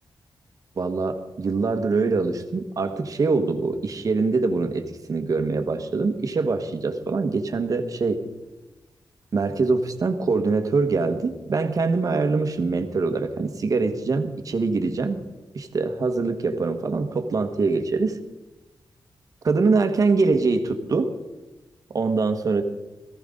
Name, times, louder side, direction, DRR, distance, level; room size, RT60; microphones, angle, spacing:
voice 1, 0.8-8.2 9.3-15.2 15.5-18.2 19.4-21.1 21.9-22.6, right 4 dB, 45° right, 7 dB, 1.4 m, -24 dB
18.5 x 15.0 x 3.9 m, 1.1 s
wide cardioid pair, 135°, 8 cm